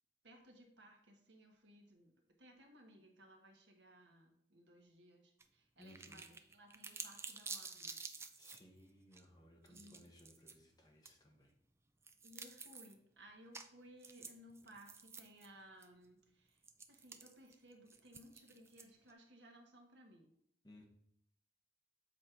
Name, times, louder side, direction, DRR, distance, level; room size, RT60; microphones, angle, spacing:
voice 1, 0.2-8.0 9.7-10.1 12.2-16.6 16.9-20.3, right 1 dB, 75° right, 2 dB, 1.4 m, -61 dB
sound 1, 5.4-5.5 5.8-8.6 9.1-9.2 9.7-10.5 11.1-11.2 12.0-12.9 13.5-13.7 14.0-15.5 15.8-15.9 16.6-19.1, right 4 dB, 15° right, 0.3 m, -50 dB
voice 2, 5.8-6.3 8.4-11.6 20.6-20.8, left 1 dB, 20° left, 1 dB, 1.1 m, -61 dB
7.4 x 4.2 x 4.6 m, 0.68 s
head